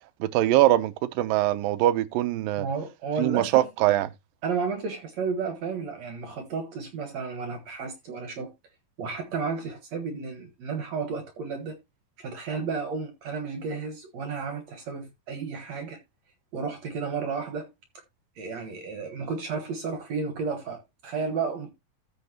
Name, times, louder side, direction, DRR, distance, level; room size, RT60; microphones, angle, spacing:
voice 1, 0.2-2.7 3.2-4.1, right 14 dB, 80° right, 2.3 m, -22 dB
voice 2, 2.6-3.7 4.4-8.5 9.0-11.8 12.2-16.0 16.5-17.7 18.4-21.7, right 5 dB, 60° right, 2.2 m, -32 dB
14.5 x 5.7 x 2.8 m
omnidirectional pair, 4.2 m